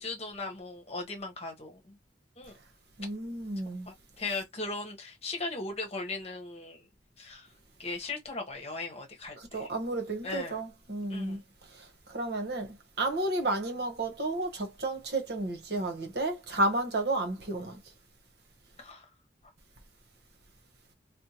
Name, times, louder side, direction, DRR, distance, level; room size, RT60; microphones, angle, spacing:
voice 1, 0.0-2.0 2.4-2.5 3.9-6.8 7.2-7.5 7.8-9.7 10.2-10.6 11.1-11.4 18.8-19.1, left 3 dB, 35° left, 1.0 m, -38 dB
voice 2, 3.0-3.9 9.4-11.4 11.7-17.8, right 2 dB, 60° right, 1.0 m, -32 dB
4.3 x 2.1 x 2.9 m
head